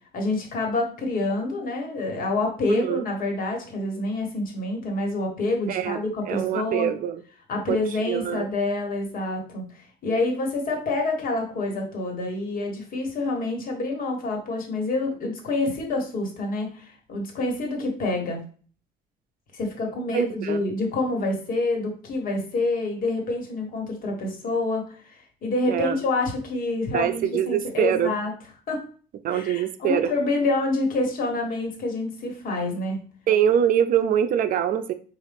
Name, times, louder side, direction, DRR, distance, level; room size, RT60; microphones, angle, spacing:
voice 1, 0.1-6.9 7.5-18.4 19.5-28.3 28.7-28.8 29.3-33.0, left 2 dB, 55° left, 2 dB, 1.4 m, -27 dB
voice 2, 2.7-3.0 5.7-7.2 7.7-7.8 8.1-8.5 20.1-20.6 25.7-26.0 26.9-28.1 29.2-30.1 33.3-34.9, right 9 dB, 55° right, 11 dB, 0.4 m, -24 dB
4.8 x 2.4 x 3.4 m, 0.42 s
cardioid pair, 110°, 17 cm